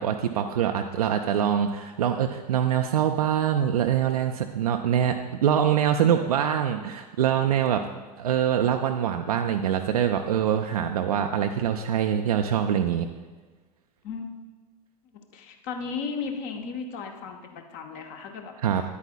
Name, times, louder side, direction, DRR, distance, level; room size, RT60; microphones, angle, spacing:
voice 1, 0.0-7.8 8.2-13.1 18.6-18.8, right 9 dB, 65° right, 5 dB, 0.5 m, -24 dB
voice 2, 14.0-14.4 15.3-18.5, left 5 dB, 40° left, 4 dB, 0.9 m, -35 dB
9.6 x 8.3 x 2.3 m, 1.3 s
figure-of-eight pair, 90°, 21 cm